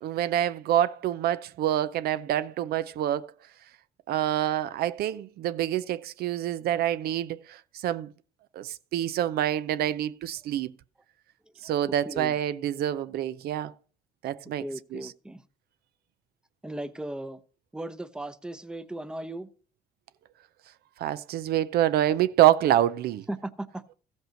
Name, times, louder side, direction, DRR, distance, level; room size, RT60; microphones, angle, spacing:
voice 1, 0.0-3.3 4.1-8.1 8.6-10.7 11.6-13.7 14.2-14.6 14.9-15.1 21.0-23.2, right 12 dB, 65° right, 0.5 m, -26 dB
voice 2, 14.6-15.4 16.6-17.4 17.7-19.5 23.3-23.8, right 1 dB, 5° right, 0.7 m, -36 dB
14.0 x 5.3 x 6.4 m
cardioid pair, 110°, 17 cm